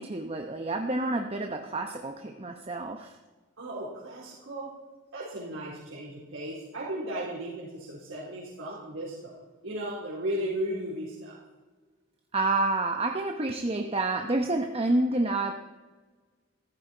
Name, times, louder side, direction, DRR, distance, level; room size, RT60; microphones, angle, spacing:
voice 1, 0.0-3.1 12.3-15.5, right 2 dB, 30° right, 4 dB, 0.9 m, -28 dB
voice 2, 3.6-4.7 5.1-9.3 9.6-11.4, right 1 dB, 75° right, -8 dB, 4.0 m, -35 dB
15.0 x 15.0 x 4.6 m, 1.3 s
head